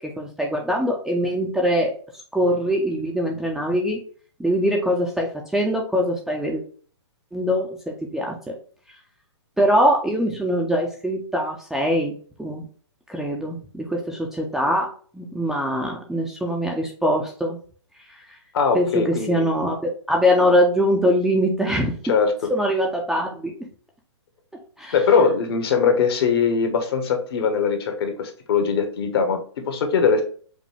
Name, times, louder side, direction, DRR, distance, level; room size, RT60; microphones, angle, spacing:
voice 1, 0.0-1.9 2.3-4.0 4.4-6.6 7.3-8.5 9.6-12.1 12.4-12.6 13.1-14.9 15.1-17.6 18.7-19.8 20.1-22.0 22.5-23.5 24.8-24.9, equal, ahead, -1 dB, 0.4 m, -22 dB
voice 2, 18.5-19.5 22.1-22.5 24.9-30.2, left 5 dB, 55° left, 5 dB, 1.1 m, -21 dB
5.0 x 2.2 x 3.2 m, 0.44 s
hypercardioid pair, 140°, 15 cm